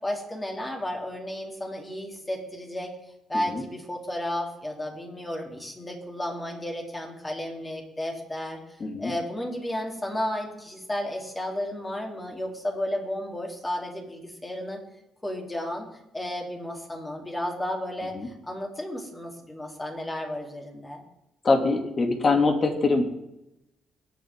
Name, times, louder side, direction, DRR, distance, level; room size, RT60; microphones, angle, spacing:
voice 1, 0.0-2.9 3.3-8.6 9.0-14.8 15.2-15.9 16.1-21.0, left 1 dB, 15° left, 0 dB, 3.6 m, -33 dB
voice 2, 8.8-9.1 18.1-18.3 21.4-23.0, left 3 dB, 40° left, 3 dB, 2.9 m, -23 dB
22.5 x 8.9 x 3.8 m, 0.87 s
cardioid pair, 90°, 0 cm